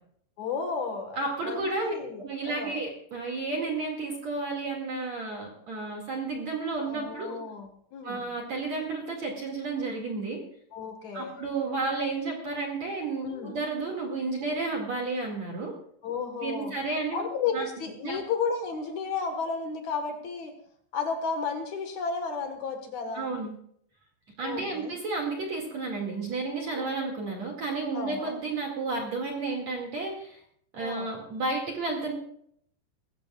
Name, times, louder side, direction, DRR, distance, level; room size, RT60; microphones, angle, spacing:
voice 1, 0.4-1.2 1.4-2.8 6.8-8.2 10.7-11.3 13.2-13.6 16.0-16.7 17.1-20.5 20.9-23.3 24.4-24.9 26.7-26.9 27.9-28.3 30.8-31.1, left 5 dB, 85° left, 4 dB, 1.6 m, -33 dB
voice 2, 1.2-7.4 8.0-10.4 11.1-15.7 16.4-17.2 17.5-17.7 18.0-18.2 23.1-23.5 24.4-30.4 30.7-32.1, right 3 dB, 45° right, 0 dB, 2.5 m, -32 dB
22.5 x 15.0 x 2.4 m, 0.67 s
omnidirectional pair, 5.9 m